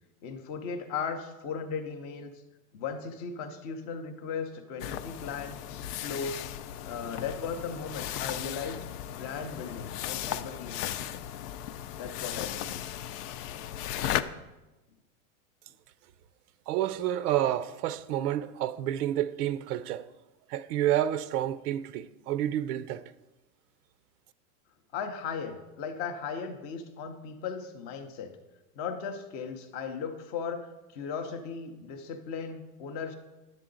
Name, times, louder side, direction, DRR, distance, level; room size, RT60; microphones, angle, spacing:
voice 1, 0.2-2.3 2.7-6.5 6.8-8.8 9.1-11.0 12.0-12.8 24.9-28.3 28.7-33.1, left 6 dB, 20° left, 0.4 m, -37 dB
sound 1, 4.8-14.2, left 11 dB, 85° left, 0.6 m, -36 dB
voice 2, 16.7-20.1 20.5-23.0, right 12 dB, 80° right, 0.6 m, -29 dB
10.5 x 7.5 x 3.8 m
supercardioid pair, 160°, 45 cm